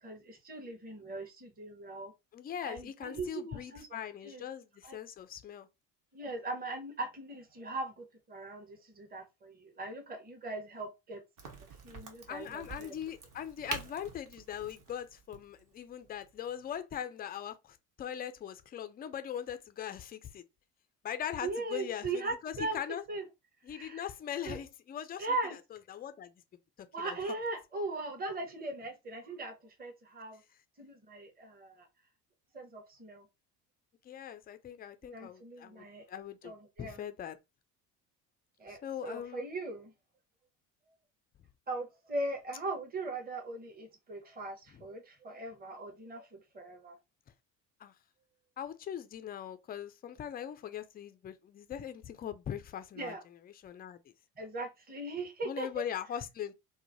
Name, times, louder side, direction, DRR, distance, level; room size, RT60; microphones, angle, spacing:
voice 1, 0.0-2.1 2.6-4.0 4.2-4.4 4.8-5.0 6.1-11.2 11.8-13.0 21.4-22.8 23.1-23.2 23.7-24.0 24.4-24.6 25.2-25.6 26.9-30.4 30.8-31.9 32.5-33.3 35.0-36.1 36.4-37.0 38.6-39.9 41.7-47.0 53.0-53.2 54.4-55.8, right 2 dB, 20° right, 1.0 m, -39 dB
voice 2, 2.3-5.7 12.3-20.4 21.0-23.0 23.6-25.4 25.7-26.3 26.8-27.4 34.0-36.5 36.8-37.4 38.7-39.5 44.7-44.8 47.8-47.9 48.6-54.0 55.4-56.5, left 9 dB, 20° left, 0.3 m, -41 dB
Crack, 11.4-16.8, right 4 dB, 40° right, 1.1 m, -46 dB
3.0 x 2.1 x 2.6 m
hypercardioid pair, 60°, 49 cm